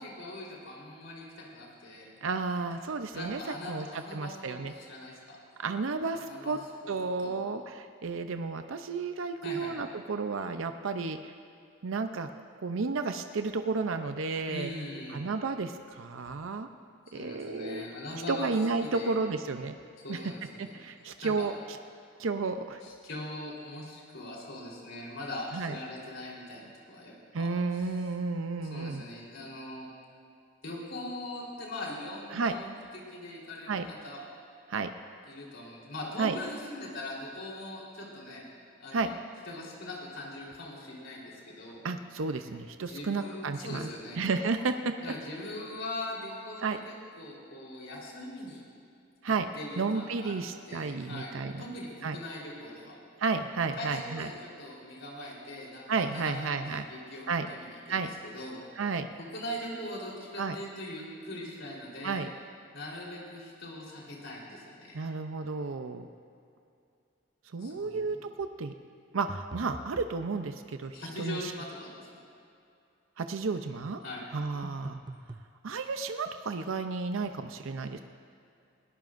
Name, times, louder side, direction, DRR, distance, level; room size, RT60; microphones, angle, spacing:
voice 1, 0.0-2.1 3.1-5.4 6.1-6.6 6.8-6.9 7.2-7.3 9.4-9.7 14.5-15.2 17.1-18.5 18.8-19.1 20.0-20.7 21.2-21.5 22.8-27.9 28.7-29.9 30.6-34.2 35.3-38.4 38.8-39.1 39.5-41.8 42.8-44.2 45.0-48.6 49.5-50.3 50.7-51.3 51.6-53.0 53.8-58.6 59.2-62.2 62.7-65.1 67.6-68.1 70.9-72.0 74.0-74.2, left 1 dB, 65° left, -3 dB, 3.8 m, -41 dB
voice 2, 2.2-3.4 3.7-3.9 4.1-4.7 5.6-6.6 6.9-11.3 11.8-12.3 12.6-14.7 15.1-16.7 17.1-17.9 18.3-19.8 20.1-20.2 20.6-21.8 22.2-22.8 25.5-25.8 27.3-29.0 32.3-32.6 33.7-33.9 34.7-34.9 36.2-36.4 38.9-39.1 41.8-43.9 44.2-44.9 46.6-46.8 49.2-49.5 49.8-51.6 52.0-52.2 53.2-54.3 55.9-56.9 57.3-57.5 57.9-58.1 58.8-59.1 60.4-60.6 62.0-62.3 64.9-66.1 67.5-68.7 69.1-71.5 73.2-74.0 74.3-75.0 75.6-78.0, right 4 dB, 75° right, 8 dB, 0.6 m, -32 dB
sound 1, 69.3-70.2 74.6-75.5, right 2 dB, 20° right, 0.5 m, -43 dB
21.0 x 17.5 x 2.6 m, 2.5 s
head